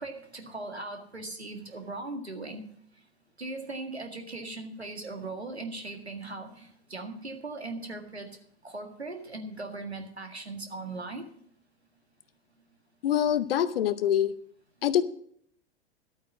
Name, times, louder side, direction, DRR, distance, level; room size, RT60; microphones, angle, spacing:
voice 1, 0.0-2.6 3.4-8.3 8.6-11.3, right 2 dB, 90° right, 5 dB, 1.9 m, -39 dB
voice 2, 13.0-14.3 14.8-15.0, left 10 dB, 65° left, 14 dB, 0.9 m, -25 dB
12.0 x 9.0 x 6.1 m, 0.65 s
figure-of-eight pair, 90°, 31 cm